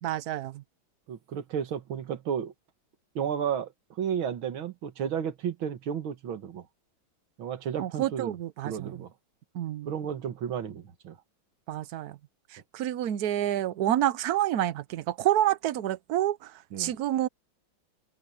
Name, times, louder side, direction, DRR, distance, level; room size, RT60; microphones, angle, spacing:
voice 1, 0.0-0.6 7.8-8.9 9.5-9.9 11.7-12.2 12.5-16.5 16.8-17.3, right 12 dB, 60° right, 1.1 m, -28 dB
voice 2, 1.1-2.5 3.2-3.7 4.0-6.7 7.4-8.3 8.6-9.1 9.9-11.2 16.7-16.9, right 8 dB, 90° right, 2.3 m, -32 dB
omnidirectional pair, 2.2 m